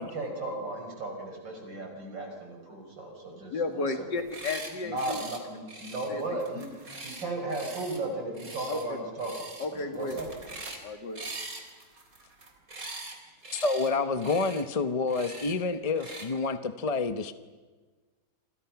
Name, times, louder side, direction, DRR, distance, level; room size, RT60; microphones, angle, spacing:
voice 1, 0.0-3.9 4.8-6.7 7.0-10.3, right 2 dB, 70° right, 3 dB, 6.1 m, -35 dB
voice 2, 3.5-5.2 6.1-6.6 8.7-9.0 9.6-10.2 10.8-11.2, left 3 dB, 65° left, 6 dB, 2.7 m, -33 dB
sound 1, 4.1-4.7 5.0-5.4 5.7-8.0 8.3-8.9 9.2-9.7 9.9-10.8 11.2-13.2 13.4-13.9 14.2-14.6 15.1-15.5 16.0-16.3, right 2 dB, 45° right, 3.8 m, -42 dB
voice 3, 13.5-17.3, left 4 dB, 30° left, 10 dB, 0.6 m, -28 dB
28.5 x 26.5 x 5.9 m, 1.4 s
omnidirectional pair, 2.0 m